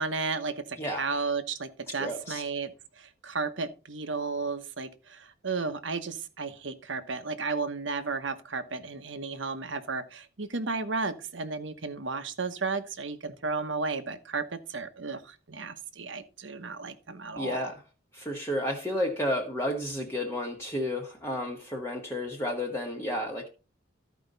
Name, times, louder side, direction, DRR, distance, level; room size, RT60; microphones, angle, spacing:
voice 1, 0.0-17.7, right 4 dB, 80° right, 1.1 m, -33 dB
voice 2, 0.8-1.1 1.9-2.4 17.4-17.8 18.1-23.5, left 1 dB, 15° left, 1.1 m, -32 dB
14.0 x 5.1 x 4.0 m
head